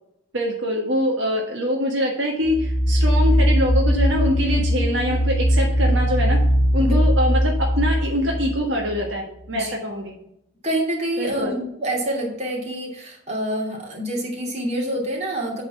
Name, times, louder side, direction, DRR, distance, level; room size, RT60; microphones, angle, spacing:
voice 1, 0.3-6.4 6.7-10.1 11.2-11.5, equal, 70° right, 0 dB, 1.5 m, -24 dB
sound 1, 2.5-9.1, equal, 65° left, 1.1 m, -20 dB
voice 2, 10.6-15.6, right 1 dB, 35° right, -2 dB, 2.6 m, -27 dB
8.7 x 4.2 x 7.0 m, 0.76 s
head